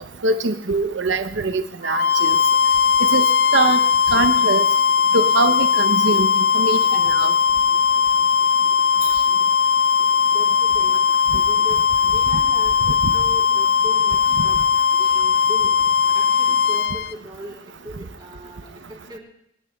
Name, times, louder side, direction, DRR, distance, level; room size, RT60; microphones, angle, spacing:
voice 1, 0.2-2.4 3.1-3.2 3.5-3.8 4.1-4.6 5.1-6.3 6.5-6.8 7.2-7.3 13.0-13.1, right 3 dB, 80° right, 9 dB, 0.7 m, -22 dB
sound 1, 1.8-17.1, left 6 dB, 50° left, 0.3 m, -18 dB
voice 2, 10.3-14.6 14.9-15.8 16.1-17.6 17.8-19.2, equal, 25° right, -2 dB, 3.4 m, -39 dB
30.0 x 9.9 x 2.3 m, 0.77 s
head